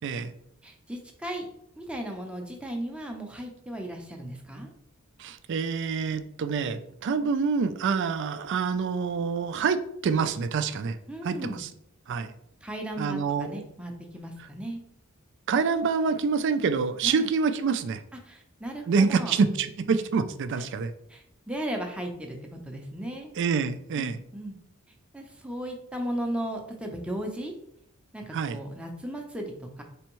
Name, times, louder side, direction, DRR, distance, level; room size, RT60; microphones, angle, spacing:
voice 1, 0.0-0.3 5.2-11.0 11.2-11.7 12.1-12.3 13.0-13.6 14.4-14.5 15.5-18.0 18.9-20.9 23.4-24.2 28.3-28.6, right 5 dB, 60° right, 11 dB, 0.3 m, -26 dB
voice 2, 0.6-1.5 1.8-4.7 11.1-11.6 12.6-14.8 17.0-17.3 18.2-19.4 21.1-23.4 24.0-24.6 25.1-27.5 28.1-29.8, right 1 dB, 5° right, 2 dB, 0.6 m, -36 dB
4.4 x 3.4 x 3.0 m, 0.75 s
head